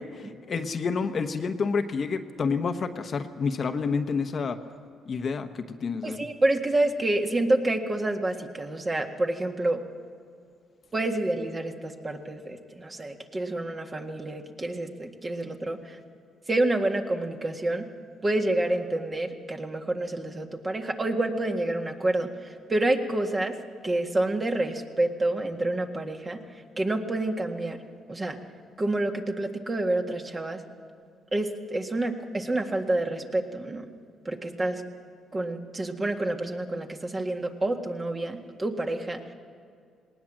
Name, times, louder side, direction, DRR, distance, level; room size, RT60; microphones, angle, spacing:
voice 1, 0.0-4.6 5.1-6.3, left 5 dB, 50° left, 7 dB, 1.1 m, -29 dB
voice 2, 6.0-9.8 10.9-16.0 16.5-17.8 18.2-23.5 23.8-26.4 26.8-27.8 28.1-28.4 28.8-30.6 31.3-33.9 34.3-34.8 35.3-39.3, right 2 dB, 25° right, 3 dB, 1.8 m, -28 dB
19.0 x 19.0 x 7.5 m, 2.2 s
cardioid pair, 90°, 0 cm